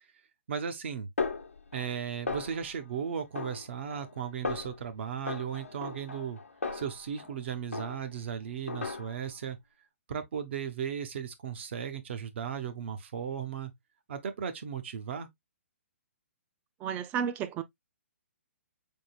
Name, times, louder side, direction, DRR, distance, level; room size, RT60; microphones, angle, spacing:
voice 1, 0.5-1.1 1.7-6.4 6.7-9.6 10.1-13.7 14.1-15.3, right 7 dB, 55° right, 0.9 m, -36 dB
Snare drum, 1.2-2.0 2.3-2.8 3.3-4.1 4.4-4.8 5.3-7.4 7.7-8.2 8.7-9.4, left 4 dB, 85° left, 0.9 m, -37 dB
voice 2, 16.8-17.6, right 8 dB, 20° right, 0.5 m, -32 dB
4.1 x 3.7 x 2.3 m
figure-of-eight pair, 130°, 7 cm